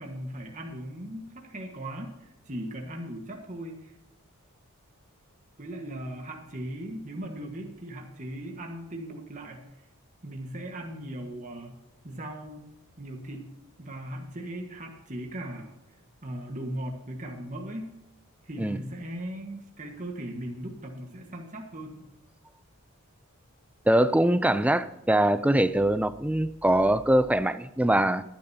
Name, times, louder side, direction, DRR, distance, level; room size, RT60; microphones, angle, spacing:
voice 1, 0.0-4.0 5.6-9.8 10.2-11.7 12.0-12.6 13.0-13.5 13.8-15.7 16.2-17.9 18.4-22.1, right 1 dB, 35° right, 1.5 m, -38 dB
voice 2, 23.9-28.2, right 1 dB, 5° right, 0.4 m, -23 dB
20.0 x 10.5 x 2.8 m
head